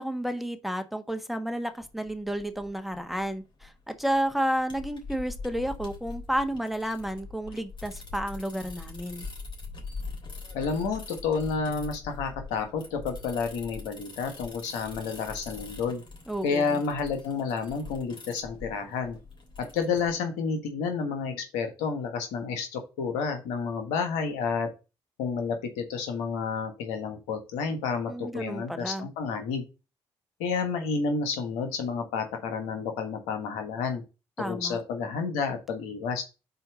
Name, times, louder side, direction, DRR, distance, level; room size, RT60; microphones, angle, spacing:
voice 1, 0.0-9.2 16.3-16.8 28.1-29.1 34.4-34.8, equal, ahead, 1.3 m, -31 dB
sound 1, 1.8-20.1, left 3 dB, 45° left, 3.2 m, -43 dB
voice 2, 10.5-16.0 16.4-19.2 19.6-24.7 25.2-29.6 30.4-34.0 34.4-36.2, left 5 dB, 85° left, 1.4 m, -30 dB
5.5 x 4.4 x 6.2 m
hypercardioid pair, 55°, 11 cm